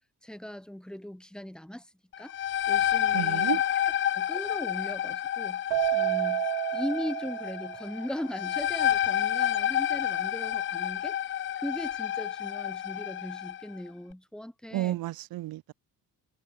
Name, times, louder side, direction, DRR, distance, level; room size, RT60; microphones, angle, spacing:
voice 1, 0.2-1.9 2.2-3.8 4.1-5.6 5.9-6.5 6.7-15.0, equal, ahead, 5.7 m, -39 dB
sound 1, 2.1-13.6, left 11 dB, 35° left, 0.5 m, -29 dB
voice 2, 3.1-3.6 14.7-15.7, right 16 dB, 70° right, 1.9 m, -31 dB
Keyboard (musical), 5.7-8.2, right 19 dB, 85° right, 0.9 m, -30 dB
cardioid pair, 175°, 37 cm